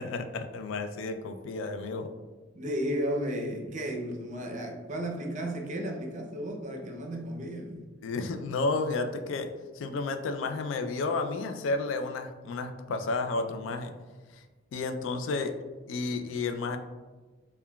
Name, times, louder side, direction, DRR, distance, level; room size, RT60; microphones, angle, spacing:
voice 1, 0.0-2.1 8.0-9.5 9.7-13.9 14.3-14.4 14.7-15.5 15.9-16.8, left 3 dB, 75° left, 7 dB, 0.3 m, -32 dB
voice 2, 2.5-7.9, equal, 40° right, 2 dB, 0.5 m, -34 dB
5.6 x 2.2 x 2.2 m, 1.3 s
head